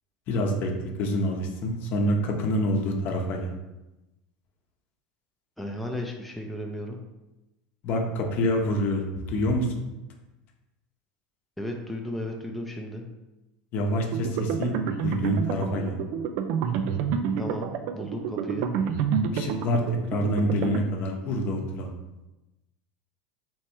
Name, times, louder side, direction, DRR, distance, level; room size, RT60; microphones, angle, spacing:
voice 1, 0.3-0.7 1.0-3.5 7.8-9.7 13.7-14.7 15.0-16.0 19.3-22.0, left 1 dB, 50° left, 2 dB, 0.8 m, -26 dB
voice 2, 5.6-7.0 11.6-13.1 17.4-18.7, left 1 dB, ahead, 1 dB, 0.5 m, -34 dB
sound 1, 14.1-20.8, right 6 dB, 60° right, 0.4 m, -28 dB
3.3 x 3.1 x 4.5 m, 1.0 s
supercardioid pair, 110°, 4 cm